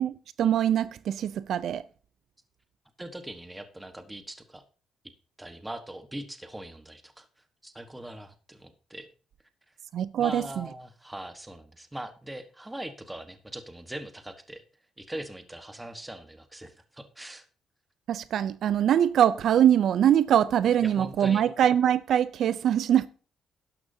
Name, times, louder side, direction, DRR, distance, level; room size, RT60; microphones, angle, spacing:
voice 1, 0.0-1.8 9.9-10.7 18.1-23.1, right 10 dB, 70° right, 0.4 m, -23 dB
voice 2, 3.0-4.6 5.4-7.3 7.6-9.1 10.2-14.6 15.0-17.4 20.8-21.4, right 1 dB, 10° right, 1.2 m, -41 dB
11.5 x 10.5 x 2.7 m
cardioid pair, 90°, 0 cm